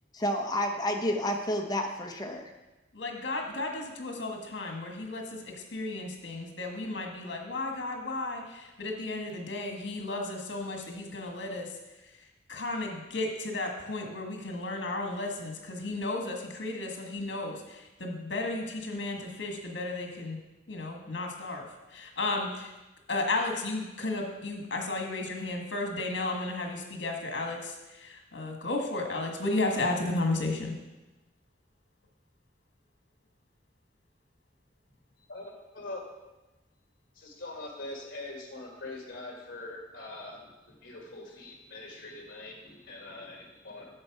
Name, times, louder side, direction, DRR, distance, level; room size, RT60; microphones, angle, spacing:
voice 1, 0.1-2.5, equal, 20° left, 3 dB, 0.9 m, -30 dB
voice 2, 2.9-11.7 12.5-20.4 20.7-21.7 21.9-22.7 23.1-30.7, left 2 dB, 70° left, 2 dB, 1.6 m, -33 dB
voice 3, 35.3-36.1 37.1-44.0, left 2 dB, 50° left, 0 dB, 1.8 m, -43 dB
8.6 x 6.7 x 4.8 m, 1.0 s
head